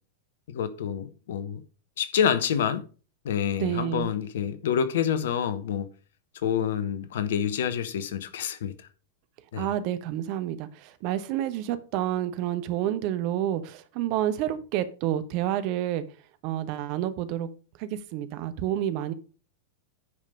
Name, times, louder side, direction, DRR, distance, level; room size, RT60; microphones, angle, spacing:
voice 1, 0.5-1.6 2.0-2.8 3.2-5.9 6.4-8.7 9.5-9.7, left 8 dB, 60° left, 1.0 m, -27 dB
voice 2, 3.6-4.1 9.6-16.0 16.4-17.5 17.8-19.1, right 12 dB, 45° right, 1.0 m, -29 dB
9.6 x 5.3 x 5.3 m
figure-of-eight pair, 90°, 0 cm